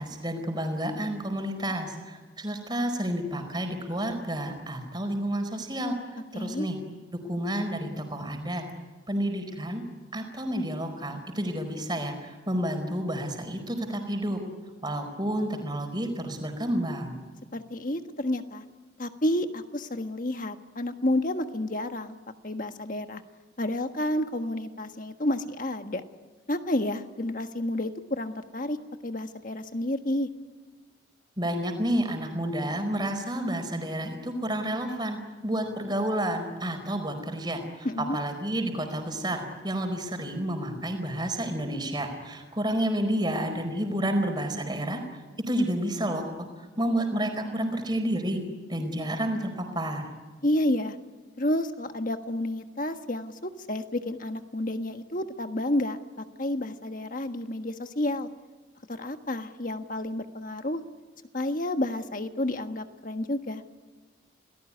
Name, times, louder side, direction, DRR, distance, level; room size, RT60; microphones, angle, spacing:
voice 1, 0.0-6.8 7.3-8.6 9.1-9.8 10.1-14.4 14.8-17.2 31.4-45.0 45.5-46.5 46.8-48.4 48.7-50.1, right 1 dB, 20° right, 6 dB, 4.7 m, -30 dB
voice 2, 6.3-6.7 17.5-18.6 19.0-22.2 22.4-23.2 23.6-26.0 26.5-28.8 29.0-30.3 37.8-38.2 50.4-51.0 51.4-58.3 58.9-60.8 61.3-63.6, left 1 dB, 45° left, 7 dB, 1.5 m, -30 dB
28.5 x 19.0 x 9.9 m, 1.3 s
head